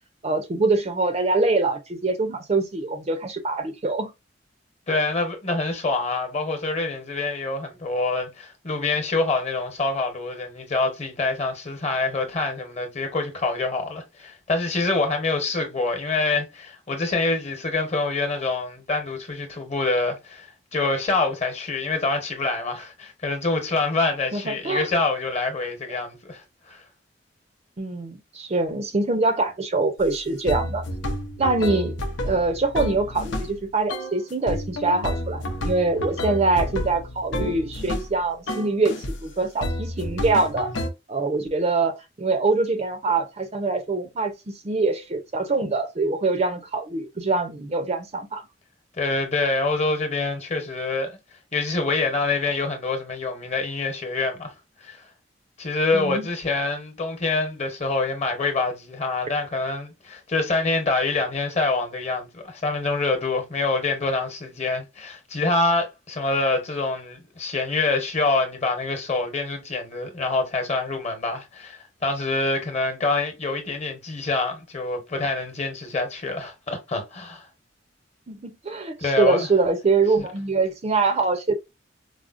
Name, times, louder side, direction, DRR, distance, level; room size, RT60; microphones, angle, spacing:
voice 1, 0.2-4.1 24.3-24.9 27.8-30.8 31.4-32.0 32.2-39.0 39.2-40.7 41.1-48.4 55.9-56.3 78.3-81.5, right 3 dB, 35° right, 0.5 m, -24 dB
voice 2, 4.9-20.5 20.7-26.8 49.0-51.2 51.5-54.5 54.8-55.0 55.6-77.5 79.0-79.5 80.2-80.3, left 3 dB, 35° left, 1.0 m, -26 dB
sound 1, 30.0-30.1 30.5-33.5 33.9-34.2 34.5-38.1 38.5-39.2 39.6-40.9, left 1 dB, 85° left, 0.7 m, -30 dB
4.8 x 2.1 x 2.4 m
head